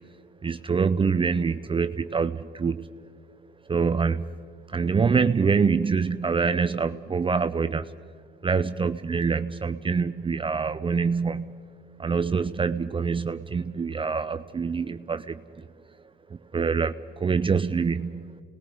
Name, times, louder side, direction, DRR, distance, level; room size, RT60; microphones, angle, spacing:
voice 1, 0.4-2.9 3.7-4.3 4.7-7.9 8.4-11.7 12.0-15.7 16.5-18.4, right 5 dB, 25° right, 11 dB, 0.5 m, -25 dB
29.5 x 20.0 x 4.9 m, 2.2 s
cardioid pair, 90°, 20 cm